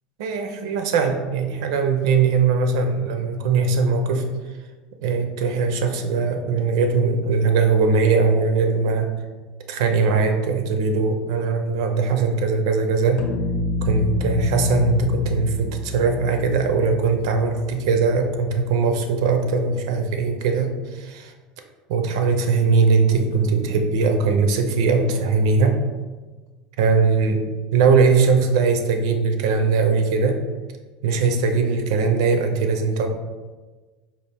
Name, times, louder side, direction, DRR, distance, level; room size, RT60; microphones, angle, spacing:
voice 1, 0.2-4.3 5.0-9.1 9.7-13.2 13.8-21.3 21.9-25.8 26.8-27.4 27.7-30.4 31.0-33.1, right 4 dB, 85° right, 5 dB, 0.5 m, -20 dB
sound 1, 13.2-18.1, left 4 dB, 65° left, 0.5 m, -28 dB
4.4 x 2.4 x 3.4 m, 1.3 s
cardioid pair, 160°, 2 cm